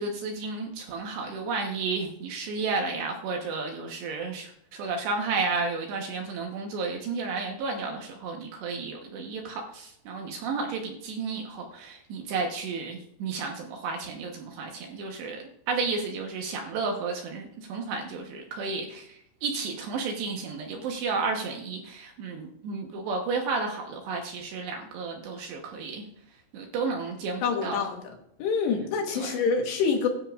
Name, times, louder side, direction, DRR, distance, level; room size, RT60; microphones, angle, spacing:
voice 1, 0.0-15.4 15.7-26.0 26.5-27.8 29.2-29.3, right 4 dB, 70° right, 2 dB, 2.9 m, -32 dB
voice 2, 27.4-28.1 28.4-30.1, left 5 dB, 70° left, 2 dB, 3.1 m, -26 dB
21.5 x 12.5 x 2.4 m, 0.76 s
omnidirectional pair, 5.8 m